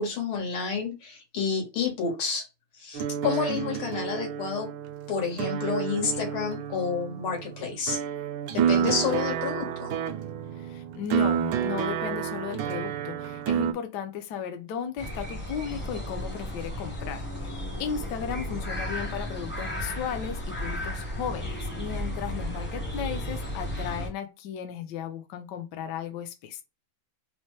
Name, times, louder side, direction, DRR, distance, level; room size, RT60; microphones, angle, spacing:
voice 1, 0.0-2.5 2.7-4.7 5.1-8.0 8.5-9.9, left 5 dB, 85° left, 2.2 m, -29 dB
sound 1, 2.9-13.7, right 8 dB, 75° right, 1.1 m, -30 dB
voice 2, 10.6-17.5 17.8-26.6, left 8 dB, 70° left, 1.1 m, -35 dB
sound 2, 15.0-24.1, left 1 dB, 10° left, 0.5 m, -34 dB
4.2 x 2.1 x 3.1 m
omnidirectional pair, 2.3 m